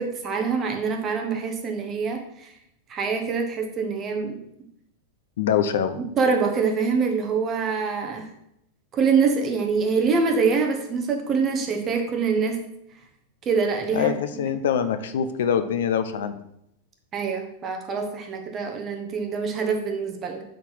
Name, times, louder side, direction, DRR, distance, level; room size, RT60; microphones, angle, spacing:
voice 1, 0.0-2.5 2.9-4.4 6.2-8.3 8.9-12.6 13.4-14.1 17.1-20.4, right 5 dB, 25° right, 4 dB, 1.0 m, -25 dB
voice 2, 5.4-6.0 13.9-16.4, left 8 dB, 85° left, 11 dB, 0.8 m, -24 dB
8.3 x 4.1 x 6.2 m, 0.77 s
supercardioid pair, 155°, 0 cm